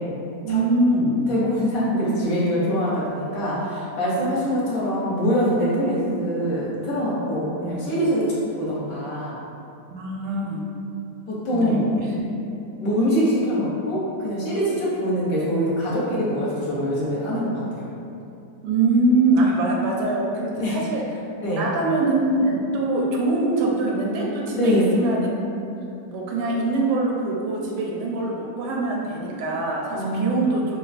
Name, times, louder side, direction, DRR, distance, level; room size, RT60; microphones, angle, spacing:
voice 1, 0.4-1.2 7.6-7.8 9.9-10.6 11.5-12.2 18.6-21.0 21.6-25.3 26.1-30.8, right 2 dB, 80° right, -2 dB, 1.1 m, -23 dB
voice 2, 1.3-9.4 11.3-11.9 12.8-17.9 20.6-20.8 21.4-21.6 24.5-24.9 29.9-30.4, equal, 65° left, -7 dB, 1.1 m, -24 dB
4.4 x 2.2 x 2.4 m, 2.6 s
omnidirectional pair, 1.8 m